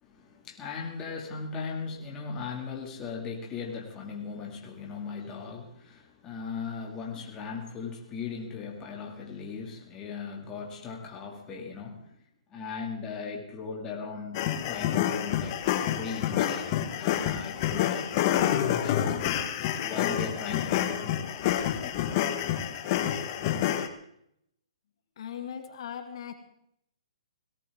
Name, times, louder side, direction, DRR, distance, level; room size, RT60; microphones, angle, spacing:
voice 1, 0.0-12.1 12.5-19.2 19.8-21.9, left 5 dB, 15° left, 0 dB, 2.2 m, -38 dB
sound 1, 14.3-23.9, left 11 dB, 35° left, 1.2 m, -28 dB
voice 2, 25.2-26.3, left 8 dB, 55° left, 7 dB, 1.7 m, -38 dB
18.0 x 17.0 x 3.6 m, 0.72 s
hypercardioid pair, 155°, 3 cm